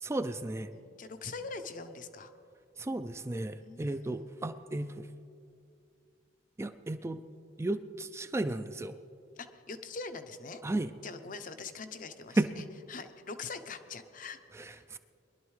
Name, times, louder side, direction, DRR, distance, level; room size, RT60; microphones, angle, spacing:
voice 1, 0.0-0.7 2.8-5.1 6.6-7.2 7.6-8.9 10.6-10.9 12.4-12.5 14.5-15.0, right 2 dB, 15° right, 9 dB, 0.3 m, -34 dB
voice 2, 0.7-2.3 3.6-4.2 9.4-10.6 11.0-12.4 12.9-14.8, left 4 dB, 45° left, 9 dB, 0.7 m, -43 dB
22.5 x 11.5 x 3.2 m, 2.5 s
head